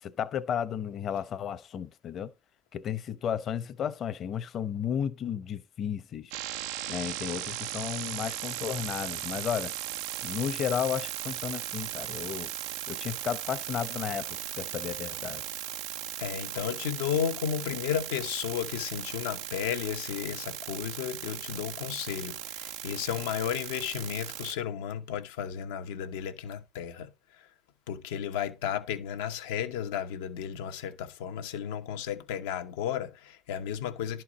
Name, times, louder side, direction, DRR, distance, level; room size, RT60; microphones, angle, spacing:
voice 1, 0.0-2.3 2.7-6.3 6.9-9.7 10.2-12.5 12.9-15.4, left 8 dB, 50° left, 0.9 m, -33 dB
sound 1, 6.3-24.5, right 13 dB, 85° right, 0.5 m, -37 dB
voice 2, 16.2-27.1 27.9-34.2, left 9 dB, 85° left, 1.0 m, -33 dB
11.5 x 4.6 x 5.0 m
supercardioid pair, 90°, 0 cm